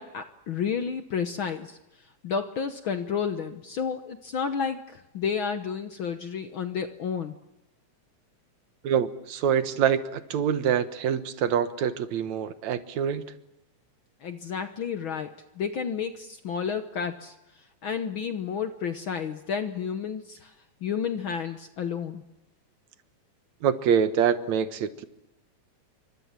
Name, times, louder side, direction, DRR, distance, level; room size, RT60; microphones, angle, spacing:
voice 1, 0.0-1.8 2.2-7.4 14.2-17.3 17.8-20.5 20.8-22.2, left 6 dB, 60° left, 8 dB, 1.5 m, -31 dB
voice 2, 8.8-13.2 23.6-25.1, right 8 dB, 70° right, 11 dB, 2.5 m, -25 dB
29.0 x 24.5 x 7.5 m, 0.95 s
omnidirectional pair, 3.4 m